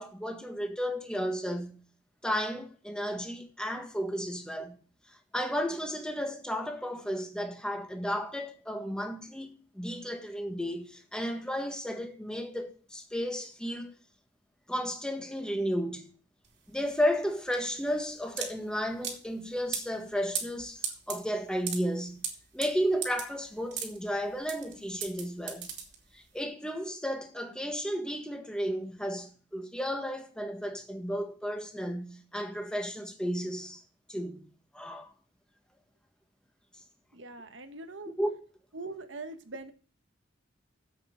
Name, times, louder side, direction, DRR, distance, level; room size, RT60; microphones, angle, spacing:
voice 1, 0.0-1.8 2.2-4.8 5.3-13.9 14.7-16.1 16.7-22.3 22.5-25.7 26.1-33.8 34.1-34.5 34.7-35.1 38.2-38.3, equal, 5° left, 1.6 m, -33 dB
sound 1, 16.4-26.4, right 7 dB, 70° right, 2.8 m, -39 dB
voice 2, 37.1-38.1 38.7-39.7, right 3 dB, 85° right, 1.4 m, -42 dB
8.0 x 7.9 x 8.0 m
head